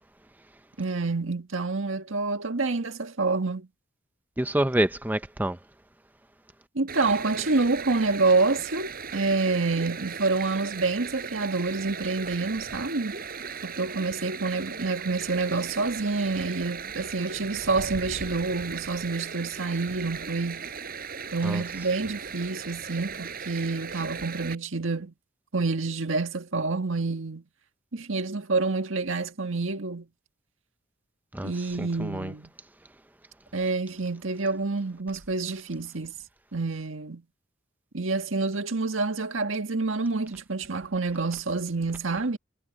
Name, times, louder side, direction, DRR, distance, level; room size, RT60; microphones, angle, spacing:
voice 1, 0.8-3.7 6.8-13.2 13.6-20.7 21.3-25.1 25.5-27.4 27.9-30.1 31.4-32.5 33.5-36.1 36.5-37.2 37.9-42.4, right 3 dB, 75° right, 1.7 m, -28 dB
voice 2, 4.4-5.6 21.4-21.6 31.3-31.5 31.8-32.3, right 1 dB, 10° right, 0.5 m, -27 dB
Stream, 6.9-24.6, right 6 dB, 45° right, 7.9 m, -37 dB
head